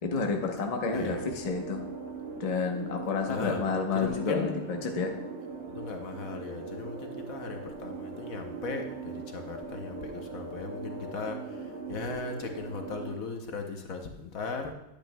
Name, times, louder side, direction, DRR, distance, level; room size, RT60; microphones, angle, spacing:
voice 1, 0.0-1.8 2.4-5.1, left 5 dB, 30° left, 2 dB, 0.7 m, -30 dB
sound 1, 0.8-13.2, right 5 dB, 55° right, 1.1 m, -40 dB
voice 2, 0.9-1.3 3.3-3.6 3.9-4.8 5.7-11.4 11.9-14.7, left 4 dB, 65° left, 4 dB, 1.1 m, -37 dB
10.0 x 9.0 x 2.2 m, 0.90 s
omnidirectional pair, 1.7 m